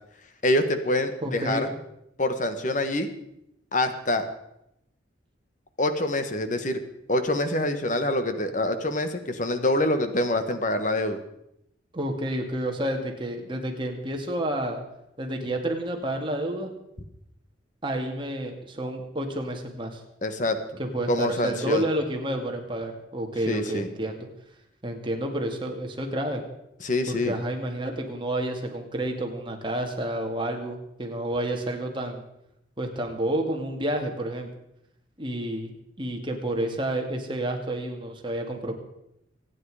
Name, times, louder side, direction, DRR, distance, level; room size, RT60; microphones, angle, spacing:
voice 1, 0.4-1.7 2.2-3.1 3.7-4.3 5.8-6.8 7.1-11.2 20.2-20.6 21.1-21.8 23.5-23.9 26.8-27.3, left 1 dB, 40° left, 9 dB, 1.5 m, -25 dB
voice 2, 1.2-1.7 11.9-14.8 15.2-16.7 17.8-20.0 20.8-24.3 24.8-26.4 27.1-32.2 32.8-34.5 35.2-38.8, right 1 dB, 25° right, 2 dB, 2.3 m, -30 dB
25.5 x 9.8 x 5.0 m, 0.82 s
head